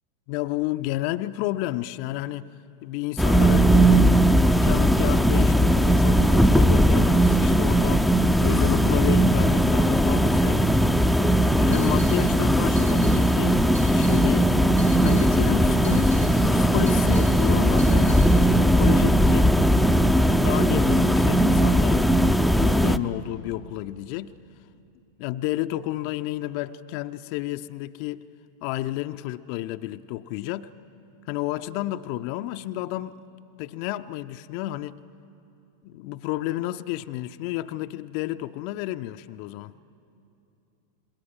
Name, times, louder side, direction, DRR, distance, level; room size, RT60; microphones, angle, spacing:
voice 1, 0.3-2.5 2.8-4.1 4.5-8.1 8.4-10.7 11.5-14.5 15.0-19.5 20.4-22.1 22.5-24.3 25.2-28.2 28.6-30.7 31.3-33.2 33.6-35.0 35.8-39.7, left 16 dB, 45° left, 0.5 m, -31 dB
sound 1, 3.2-23.0, equal, ahead, 0.5 m, -19 dB
sound 2, 11.5-18.3, right 1 dB, 80° right, 5.8 m, -42 dB
27.0 x 21.5 x 7.5 m
figure-of-eight pair, 90°, 0 cm